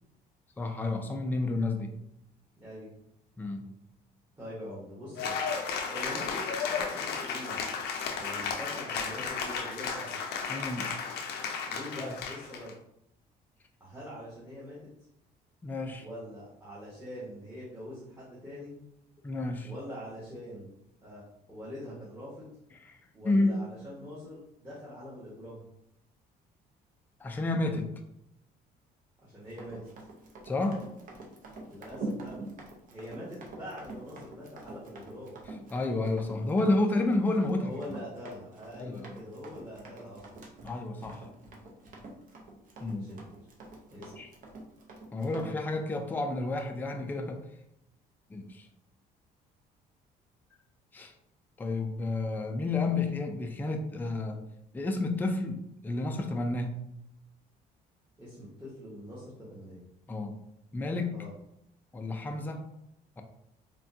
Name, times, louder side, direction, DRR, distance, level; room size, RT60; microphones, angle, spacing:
voice 1, 0.6-1.9 3.4-3.7 10.5-10.9 12.0-12.1 15.6-16.1 19.2-19.7 22.8-23.6 27.2-27.9 30.5-30.8 35.7-37.7 38.8-39.2 40.6-41.3 42.8-43.1 44.2-44.3 45.1-47.4 48.3-48.7 50.9-51.1 51.6-54.4 54.7-56.7 60.1-60.3 60.7-61.2 61.9-62.6, left 2 dB, 10° left, 4 dB, 0.3 m, -30 dB
voice 2, 2.6-2.9 4.4-5.4 5.9-7.6 8.1-10.2 11.7-12.7 13.8-14.8 16.0-18.8 19.6-20.7 21.0-21.2 21.5-22.6 23.1-25.6 29.2-29.8 31.6-32.3 32.9-35.4 37.5-40.4 42.8-43.3 43.9-44.1 58.2-59.8 61.1-61.3, equal, 15° right, -9 dB, 1.1 m, -43 dB
Cheering / Applause, 5.2-12.7, left 5 dB, 75° left, 0.5 m, -34 dB
Run, 29.5-45.6, right 2 dB, 55° right, 0.7 m, -45 dB
3.4 x 2.2 x 2.6 m, 0.79 s
cardioid pair, 110°, 17 cm